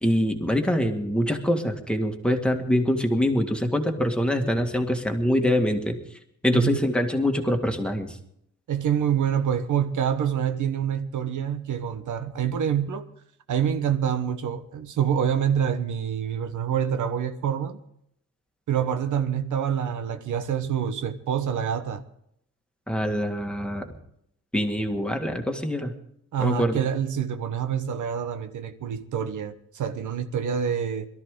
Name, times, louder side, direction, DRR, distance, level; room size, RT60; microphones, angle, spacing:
voice 1, 0.0-6.0 6.4-8.1 22.9-23.9 24.5-25.9 26.4-26.8, equal, 5° left, 1.8 m, -24 dB
voice 2, 8.7-13.1 13.5-17.8 18.7-22.0 26.3-31.1, right 8 dB, 75° right, 1.1 m, -26 dB
22.0 x 13.0 x 3.8 m
wide cardioid pair, 135°, 30 cm